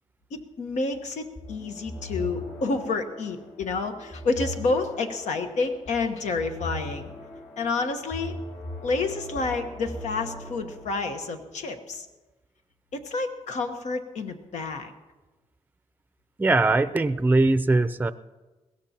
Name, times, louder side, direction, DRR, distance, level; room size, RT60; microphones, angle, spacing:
voice 1, 0.3-7.1 7.6-8.4 8.8-12.1 12.9-14.9, left 3 dB, 85° left, 6 dB, 1.2 m, -29 dB
sound 1, 1.4-10.9, left 1 dB, 55° left, 4.6 m, -39 dB
voice 2, 16.4-18.1, right 2 dB, 15° right, 13 dB, 0.5 m, -21 dB
21.5 x 16.5 x 2.9 m, 1.2 s
cardioid pair, 90°, 12 cm